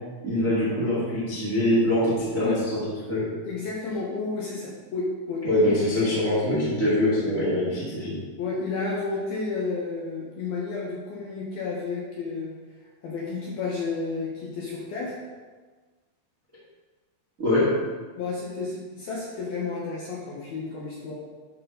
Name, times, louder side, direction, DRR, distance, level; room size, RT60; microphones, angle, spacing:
voice 1, 0.2-2.8 3.1-3.3 5.4-8.2 17.4-17.8, left 1 dB, 40° right, -8 dB, 1.1 m, -23 dB
voice 2, 3.4-5.4 8.4-12.6 13.0-15.2 18.2-21.1, left 4 dB, 65° left, -5 dB, 2.5 m, -31 dB
11.5 x 6.7 x 4.0 m, 1.4 s
omnidirectional pair, 6.0 m